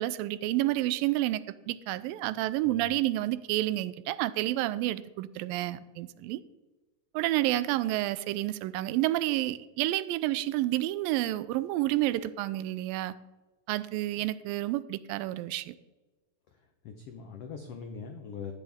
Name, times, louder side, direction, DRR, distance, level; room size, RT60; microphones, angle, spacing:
voice 1, 0.0-6.4 7.1-13.2 13.7-15.8, right 15 dB, 90° right, 16 dB, 2.3 m, -29 dB
voice 2, 2.7-3.0 16.8-18.5, left 6 dB, 85° left, 5 dB, 1.3 m, -42 dB
13.0 x 9.9 x 3.6 m, 1.2 s
omnidirectional pair, 4.0 m